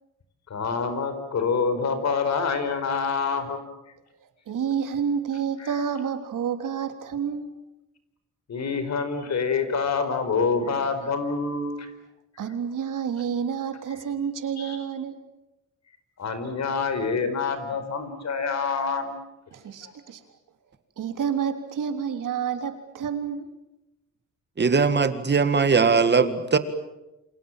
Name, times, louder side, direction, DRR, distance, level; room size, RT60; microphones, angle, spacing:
voice 1, 0.5-3.6 8.5-11.9 14.6-14.8 16.2-19.1 19.8-19.9, left 5 dB, 60° left, 9 dB, 4.8 m, -26 dB
voice 2, 4.5-7.5 12.4-15.1 19.5-20.2 21.0-23.5, right 7 dB, 85° right, 7 dB, 3.6 m, -29 dB
voice 3, 24.6-26.6, right 5 dB, 35° right, 11 dB, 2.0 m, -20 dB
29.0 x 27.0 x 7.5 m, 0.94 s
wide cardioid pair, 145°, 31 cm